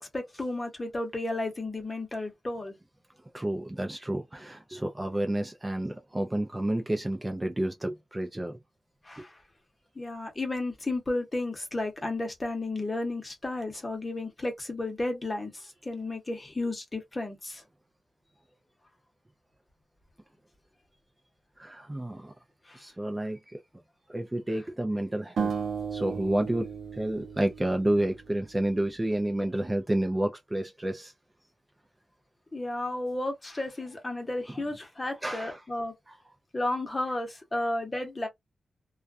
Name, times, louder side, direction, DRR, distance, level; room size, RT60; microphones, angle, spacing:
voice 1, 0.0-2.7 9.0-9.4 9.9-17.6 22.7-22.8 32.5-35.9 36.5-38.3, left 2 dB, 25° left, 0.9 m, -33 dB
voice 2, 3.3-8.6 21.6-22.3 22.8-23.6 24.1-25.5 25.9-31.1 35.2-35.6 36.1-36.2, right 1 dB, 15° right, 0.4 m, -30 dB
sound 1, 25.4-28.5, right 6 dB, 80° right, 0.6 m, -35 dB
2.3 x 2.2 x 2.5 m
wide cardioid pair, 105°, 0 cm